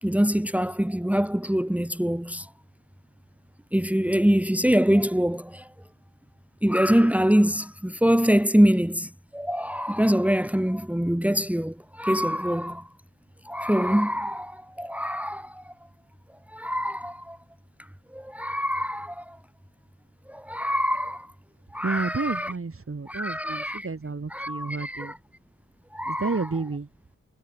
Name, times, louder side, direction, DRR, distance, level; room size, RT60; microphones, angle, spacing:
voice 1, 0.0-2.5 3.7-5.7 6.6-12.9 13.4-15.7 16.5-17.4 18.1-19.4 20.3-21.3 21.7-22.5 23.1-23.9 24.3-25.2 25.9-26.5, equal, 5° right, 2.3 m, -24 dB
voice 2, 21.8-25.1 26.1-26.9, right 4 dB, 45° right, 5.2 m, -31 dB
cardioid pair, 60°, 31 cm